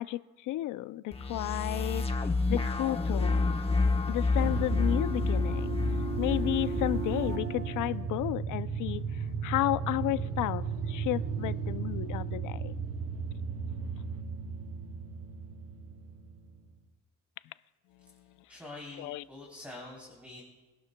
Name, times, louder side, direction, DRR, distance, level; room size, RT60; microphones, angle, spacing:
voice 1, 0.0-3.6 4.1-5.8 6.2-12.7 13.8-14.0 18.0-18.1 19.0-19.2, left 15 dB, 85° left, 16 dB, 0.5 m, -33 dB
sound 1, 1.1-7.4, left 3 dB, 20° left, 1.0 m, -29 dB
sound 2, 4.4-16.6, right 5 dB, 50° right, 1.2 m, -35 dB
voice 2, 18.5-20.4, left 2 dB, 5° right, -4 dB, 3.5 m, -45 dB
24.5 x 12.0 x 2.2 m, 1.2 s
cardioid pair, 90°, 30 cm